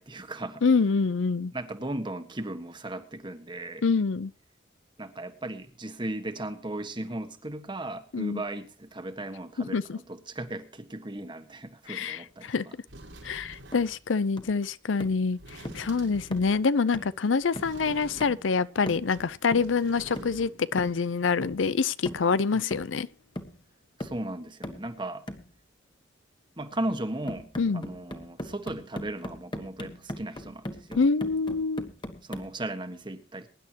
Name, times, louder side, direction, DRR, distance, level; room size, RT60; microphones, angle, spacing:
voice 1, 0.0-0.7 1.5-3.8 5.0-12.5 22.5-22.6 24.0-25.2 26.6-31.0 32.2-33.5, right 1 dB, 25° right, 1.4 m, -36 dB
voice 2, 0.6-1.5 3.8-4.3 8.1-8.4 9.6-10.0 11.9-12.7 13.2-23.1 27.6-27.8 31.0-31.9, left 4 dB, 80° left, 0.6 m, -26 dB
sound 1, 12.4-12.5 12.9-14.0 15.3-16.7 17.5-18.6 19.0-20.7 21.0-21.1, right 1 dB, 90° right, 5.4 m, -47 dB
sound 2, 13.7-13.9 14.4-14.6 15.0-15.3 15.6-15.9 16.3-16.6 16.9-17.2 17.6-17.8 18.2-18.4 18.9-19.2 19.5-19.8 20.2-20.4 20.8-21.0 21.4-21.7 22.1-22.3 22.7-23.1 23.4-23.6 24.0-24.3 24.6-24.9 25.3-25.5 27.3-32.5, left 1 dB, 25° left, 1.6 m, -39 dB
23.0 x 10.5 x 2.9 m
head